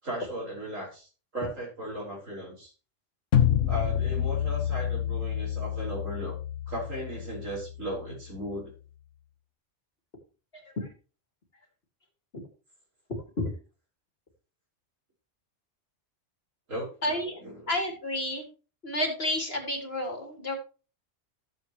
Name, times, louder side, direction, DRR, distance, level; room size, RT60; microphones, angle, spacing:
voice 1, 0.0-2.7 3.7-6.4 6.7-8.7 16.7-16.9 17.2-17.7, right 1 dB, 80° right, -2 dB, 6.0 m, -36 dB
sound 1, 3.3-8.4, left 10 dB, 75° left, 1.3 m, -28 dB
voice 2, 10.5-10.9 13.4-13.5 17.0-17.4 17.7-18.4 18.8-20.6, left 1 dB, 50° left, 2 dB, 3.3 m, -30 dB
14.5 x 8.3 x 3.1 m, 0.34 s
omnidirectional pair, 1.3 m